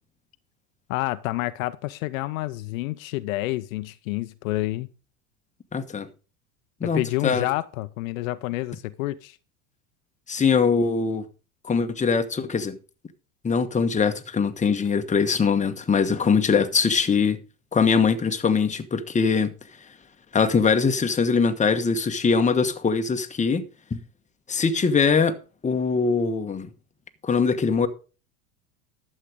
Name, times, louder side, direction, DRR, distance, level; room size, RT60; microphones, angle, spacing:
voice 1, 0.9-4.9 6.8-9.4, left 18 dB, 65° left, 0.8 m, -28 dB
voice 2, 5.7-6.1 6.8-7.5 10.3-11.2 11.6-12.8 13.4-17.4 17.7-19.5 20.3-23.6 23.9-24.0 24.5-25.4 25.6-26.7 27.2-27.9, left 5 dB, 15° left, 1.3 m, -22 dB
12.0 x 7.7 x 5.0 m
hypercardioid pair, 85°, 43 cm